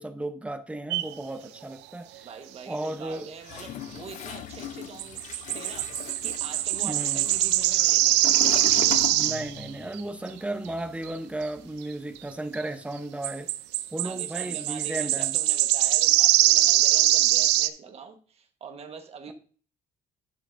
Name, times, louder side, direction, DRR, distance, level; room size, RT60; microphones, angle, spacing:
voice 1, 0.0-2.3 2.7-3.3 6.8-7.2 9.1-13.5 13.9-15.4, right 1 dB, 5° right, 0.7 m, -34 dB
sound 1, 0.9-1.1 5.0-9.6 10.0-10.1 11.1-11.2 12.6-12.7 13.2-17.7, right 15 dB, 90° right, 0.5 m, -23 dB
voice 2, 2.2-5.2 5.5-8.4 14.0-19.3, right 6 dB, 35° right, 1.2 m, -44 dB
Toilet flush, 3.4-9.9 10.1-11.7, left 10 dB, 45° left, 0.5 m, -39 dB
Car / Engine starting, 6.7-6.8 7.1-12.4, left 4 dB, 75° left, 2.6 m, -53 dB
11.0 x 5.8 x 2.5 m
cardioid pair, 145°, 17 cm